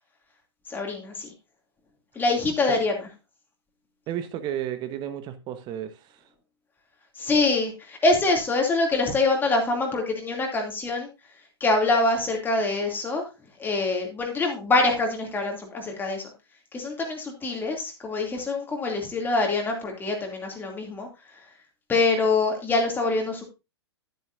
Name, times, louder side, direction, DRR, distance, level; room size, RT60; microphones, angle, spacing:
voice 1, 0.7-1.3 2.1-2.9 7.2-11.1 11.6-13.2 13.6-16.2 16.7-21.1 21.9-23.4, left 3 dB, 15° left, 2.7 m, -25 dB
voice 2, 4.1-6.2, right 10 dB, 30° right, 1.3 m, -33 dB
11.0 x 10.0 x 2.7 m
figure-of-eight pair, 105°, 14 cm